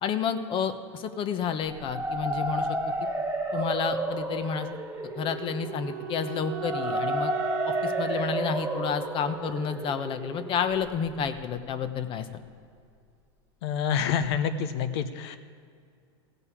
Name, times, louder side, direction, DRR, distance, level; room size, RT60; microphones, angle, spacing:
voice 1, 0.0-3.1 3.5-4.7 5.2-7.3 7.7-12.3, left 7 dB, 35° left, 9 dB, 1.0 m, -30 dB
sound 1, 1.7-11.5, right 1 dB, 10° right, 1.6 m, -32 dB
Wind instrument woodwind instrument, 5.0-10.1, right 10 dB, 70° right, 1.5 m, -38 dB
voice 2, 13.6-15.4, left 7 dB, 65° left, 10 dB, 1.0 m, -27 dB
16.0 x 5.4 x 8.4 m, 2.3 s
hypercardioid pair, 115°, 14 cm